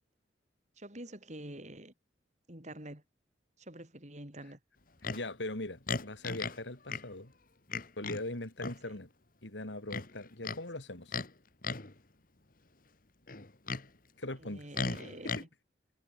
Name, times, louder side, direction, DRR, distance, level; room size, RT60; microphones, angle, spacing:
voice 1, 0.8-1.9 2.5-3.0 3.6-4.6 14.4-15.5, right 1 dB, 40° right, 5.3 m, -47 dB
Livestock farm animals working animals, 5.0-5.2 5.9-6.6 6.9-7.0 7.7-8.2 8.6-8.8 9.9-10.6 11.1-11.3 11.6-11.9 13.3-13.9 14.7-15.4, left 4 dB, 50° left, 2.1 m, -36 dB
voice 2, 5.1-7.3 8.0-9.1 9.4-11.2 14.2-14.7 15.2-15.4, left 2 dB, 80° left, 3.7 m, -40 dB
head